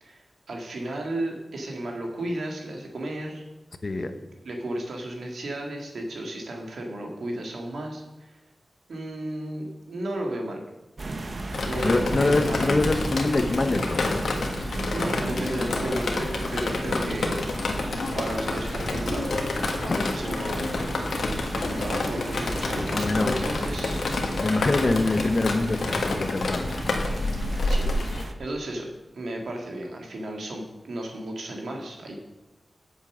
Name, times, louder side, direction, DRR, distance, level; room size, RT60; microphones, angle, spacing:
voice 1, 0.0-3.4 4.4-8.4 8.9-10.6 11.6-12.8 14.9-17.4 18.1-19.5 19.8-20.8 21.5-24.0 27.7-28.9 29.1-32.2, right 1 dB, 85° right, 1 dB, 2.1 m, -34 dB
sound 1, 11.0-28.3, right 2 dB, 45° right, 0.9 m, -36 dB
Drip, 11.5-28.2, left 2 dB, 85° left, 1.5 m, -28 dB
voice 2, 11.8-14.2 16.8-17.0 19.9-20.1 22.9-23.4 24.4-26.7, left 2 dB, 45° left, 8 dB, 1.0 m, -25 dB
8.7 x 7.3 x 6.3 m, 1.0 s
wide cardioid pair, 90°, 0 cm